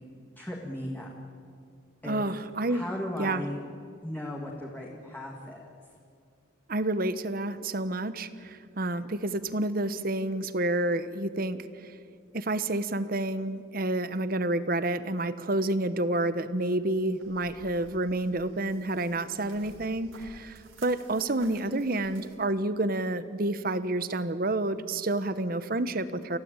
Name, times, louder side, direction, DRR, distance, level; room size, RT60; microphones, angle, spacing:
voice 1, 0.4-1.1 2.0-2.2 2.7-3.6 4.0-5.7, left 1 dB, 10° left, -2 dB, 2.0 m, -36 dB
voice 2, 2.0-2.8 3.2-3.4 6.7-11.9 12.3-26.4, right 2 dB, 45° right, 13 dB, 1.0 m, -29 dB
sound 1, 16.9-22.4, right 2 dB, 85° right, 3.8 m, -54 dB
29.0 x 16.0 x 9.0 m, 2.4 s
head